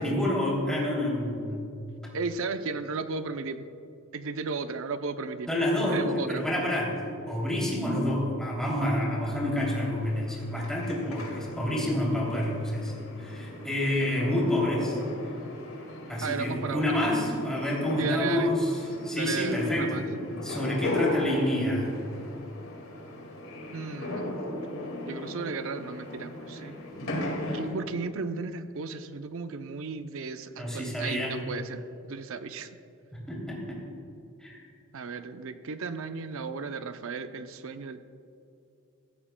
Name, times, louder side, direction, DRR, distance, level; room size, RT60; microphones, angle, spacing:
voice 1, 0.0-1.5 5.5-15.0 16.1-18.7 19.0-20.0 20.4-21.9 30.6-31.4 33.1-33.8 34.4-34.6, left 1 dB, 5° left, -4 dB, 2.9 m, -28 dB
voice 2, 2.1-3.7 4.1-5.5 5.9-6.5 16.2-17.0 18.0-18.6 19.1-20.0 23.7-24.4 25.1-26.8 27.3-32.7 34.9-38.0, right 4 dB, 65° right, 10 dB, 0.5 m, -35 dB
sound 1, 9.6-27.8, left 1 dB, 75° left, 2.0 m, -36 dB
16.0 x 13.5 x 2.2 m, 2.7 s
head